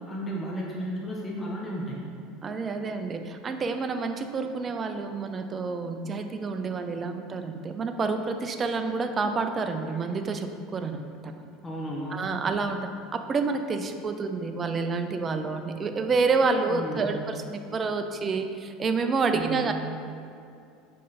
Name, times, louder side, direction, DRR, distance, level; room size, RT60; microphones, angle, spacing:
voice 1, 0.1-2.0 11.6-12.5 16.7-17.2 19.3-19.7, equal, 15° left, -3 dB, 1.0 m, -34 dB
voice 2, 2.4-11.5 12.1-12.8 13.1-19.7, right 4 dB, 25° right, 7 dB, 0.5 m, -28 dB
5.5 x 5.3 x 4.1 m, 2.5 s
supercardioid pair, 125°, 0 cm